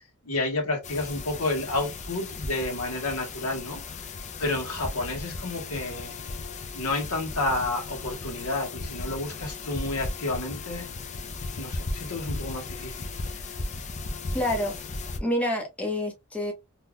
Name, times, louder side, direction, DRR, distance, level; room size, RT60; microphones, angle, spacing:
voice 1, 0.2-3.8 4.4-6.2 6.7-10.9 11.6-13.1, left 2 dB, 80° left, 1.4 m, -30 dB
sound 1, 0.8-15.2, left 3 dB, 35° left, 0.5 m, -36 dB
voice 2, 14.3-14.7 15.2-16.5, left 1 dB, 5° left, 0.8 m, -27 dB
3.6 x 2.8 x 2.2 m
head